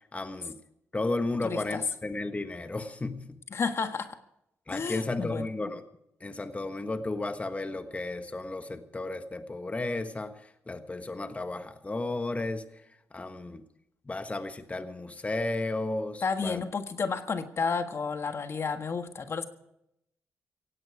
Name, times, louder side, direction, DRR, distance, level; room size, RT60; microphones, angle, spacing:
voice 1, 0.1-0.6 0.9-3.4 4.7-5.8 6.2-10.3 10.7-12.6 13.1-13.6 14.1-16.6, left 2 dB, 25° left, 8 dB, 1.5 m, -33 dB
voice 2, 1.4-1.8 3.5-4.2 4.7-5.5 16.2-19.4, left 5 dB, 55° left, 8 dB, 1.6 m, -31 dB
17.0 x 16.5 x 4.8 m, 0.80 s
cardioid pair, 70°, 5 cm